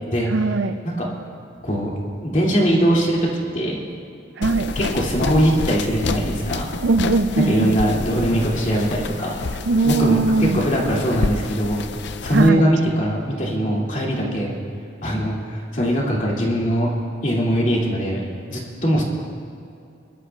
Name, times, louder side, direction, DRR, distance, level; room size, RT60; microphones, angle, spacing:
voice 1, 0.3-0.7 4.4-4.7 6.8-7.8 9.7-10.6 12.3-12.7, right 3 dB, 65° right, 10 dB, 0.5 m, -20 dB
voice 2, 1.6-3.2 3.5-3.9 4.7-6.7 7.4-9.4 9.9-11.8 12.2-14.5 15.0-16.9 17.2-18.2 18.5-19.0, equal, 40° left, -4 dB, 2.6 m, -21 dB
sound 1, 4.4-12.5, left 3 dB, 60° left, 0.5 m, -29 dB
26.5 x 12.5 x 2.4 m, 2.6 s
head